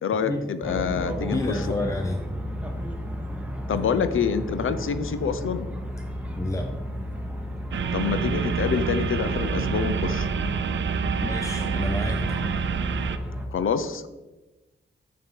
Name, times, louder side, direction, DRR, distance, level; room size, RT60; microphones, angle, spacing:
voice 1, 0.0-1.7 3.7-5.7 7.9-10.3 13.5-14.0, left 6 dB, 85° left, 12 dB, 0.6 m, -26 dB
sound 1, 0.6-13.5, equal, 5° right, 1.2 m, -32 dB
voice 2, 1.2-2.3 3.9-4.0 6.3-6.7 11.2-12.3, left 2 dB, 15° left, 5 dB, 0.6 m, -29 dB
sound 2, 7.7-13.2, right 7 dB, 65° right, 0.5 m, -28 dB
6.7 x 6.6 x 4.5 m, 1.1 s
wide cardioid pair, 100°, 20 cm